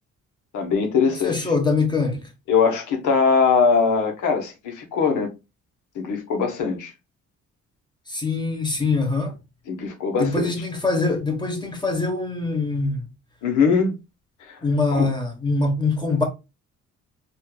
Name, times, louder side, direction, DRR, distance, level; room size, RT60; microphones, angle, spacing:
voice 1, 0.5-1.5 2.5-5.3 5.9-6.9 9.7-10.5 13.4-13.9 14.9-15.1, left 5 dB, 80° left, 1.2 m, -21 dB
voice 2, 1.2-2.3 8.1-9.3 10.2-13.0 14.6-16.2, left 3 dB, 15° left, 1.0 m, -23 dB
4.3 x 2.6 x 2.2 m
cardioid pair, 90°, 30 cm